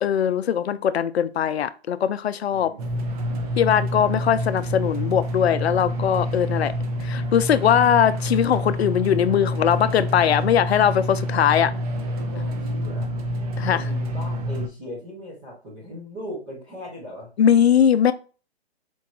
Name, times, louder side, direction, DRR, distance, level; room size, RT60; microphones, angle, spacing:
voice 1, 0.0-2.7 3.6-6.7 7.0-11.7 13.6-13.8 17.4-18.1, left 9 dB, 75° left, 0.5 m, -20 dB
voice 2, 2.5-3.3 4.0-4.3 12.2-13.1 13.7-17.3, equal, 5° right, 0.3 m, -39 dB
sound 1, 2.8-14.7, equal, 35° right, 0.7 m, -27 dB
4.4 x 2.3 x 2.9 m
hypercardioid pair, 135°, 32 cm